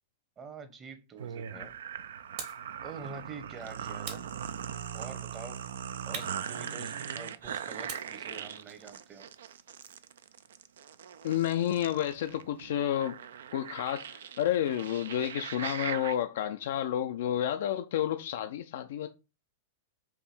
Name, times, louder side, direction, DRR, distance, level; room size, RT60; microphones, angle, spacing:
voice 1, 0.4-1.7 2.8-4.3 4.9-5.6 6.0-9.3, right 5 dB, 25° right, 0.9 m, -46 dB
sound 1, 1.2-16.2, right 8 dB, 70° right, 0.4 m, -40 dB
sound 2, 2.4-2.7 4.0-5.0 6.1-7.2 7.9-10.1, right 6 dB, 55° right, 1.4 m, -45 dB
voice 2, 11.2-13.2 13.5-19.1, left 11 dB, 60° left, 0.3 m, -30 dB
4.6 x 2.7 x 4.2 m
hypercardioid pair, 100°, 0 cm